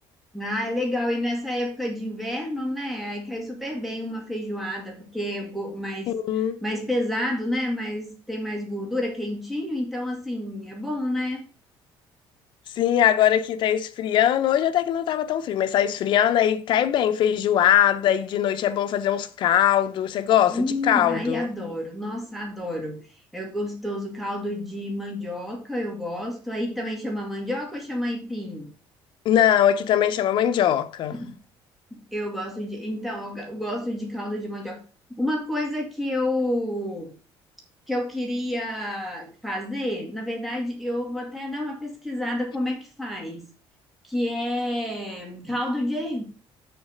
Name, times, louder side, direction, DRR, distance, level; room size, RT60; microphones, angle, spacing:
voice 1, 0.3-6.1 6.6-11.5 20.5-23.1 23.3-28.7 31.1-31.4 32.1-34.8 35.2-37.1 37.9-43.5 44.0-46.2, left 1 dB, ahead, 2.1 m, -29 dB
voice 2, 6.1-6.6 12.8-21.5 29.2-31.2, left 10 dB, 55° left, 0.7 m, -21 dB
6.9 x 4.0 x 6.5 m
cardioid pair, 150°, 10 cm